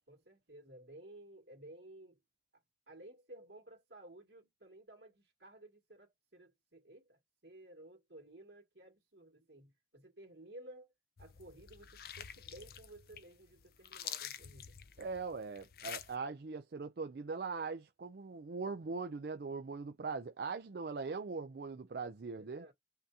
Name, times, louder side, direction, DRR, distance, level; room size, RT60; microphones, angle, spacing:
voice 1, 0.1-2.2 2.5-2.6 2.9-10.9 11.2-14.8 22.4-22.7, right 1 dB, 85° right, 2.3 m, -55 dB
sound 1, 11.2-16.1, left 9 dB, 55° left, 0.5 m, -48 dB
voice 2, 15.0-22.6, right 4 dB, 60° right, 0.4 m, -41 dB
5.7 x 2.7 x 2.7 m
head